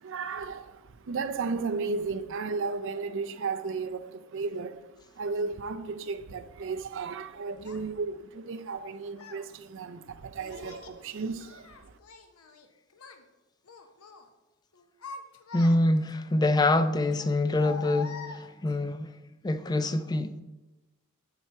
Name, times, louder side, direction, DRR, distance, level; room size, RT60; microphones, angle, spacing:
voice 1, 0.0-11.9, right 4 dB, 60° right, 0.5 m, -34 dB
Child speech kid speaking, 7.6-7.8 8.7-9.5 10.4-11.0 11.4-12.7 12.9-13.2 13.6-14.2 14.7-16.1 17.1-18.8, left 4 dB, 85° left, 0.8 m, -44 dB
voice 2, 15.5-19.1 19.4-20.4, left 2 dB, 20° left, 0.4 m, -25 dB
7.7 x 4.3 x 5.8 m
head